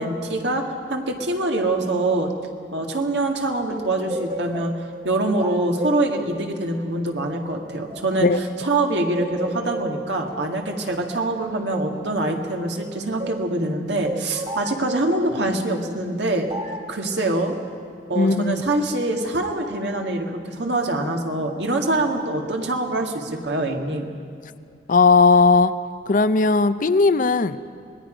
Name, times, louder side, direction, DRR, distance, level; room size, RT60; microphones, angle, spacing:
voice 1, 0.0-2.3 2.7-4.7 5.0-8.3 8.6-16.5 16.9-17.5 18.1-24.1, right 2 dB, 70° right, 2 dB, 2.0 m, -24 dB
sound 1, 3.7-8.7 9.2-13.5 14.0-15.5 16.5-16.9, right 1 dB, 40° right, 2.1 m, -34 dB
voice 2, 18.2-18.6 24.9-25.8 26.1-27.6, left 4 dB, 45° left, 13 dB, 0.6 m, -17 dB
25.5 x 20.5 x 5.1 m, 2.4 s
head